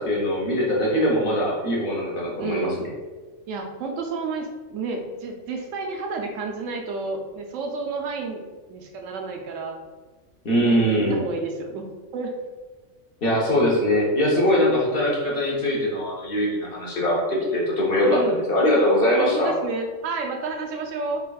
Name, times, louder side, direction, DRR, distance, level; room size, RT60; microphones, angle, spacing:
voice 1, 0.0-2.9 10.4-11.2 13.2-19.6, equal, 50° left, -4 dB, 1.0 m, -22 dB
voice 2, 2.4-2.8 3.5-8.4 8.7-9.8 10.5-12.4 18.0-18.4 19.1-21.2, right 3 dB, 85° right, 3 dB, 1.0 m, -31 dB
5.3 x 2.4 x 2.3 m, 1.3 s
omnidirectional pair, 1.3 m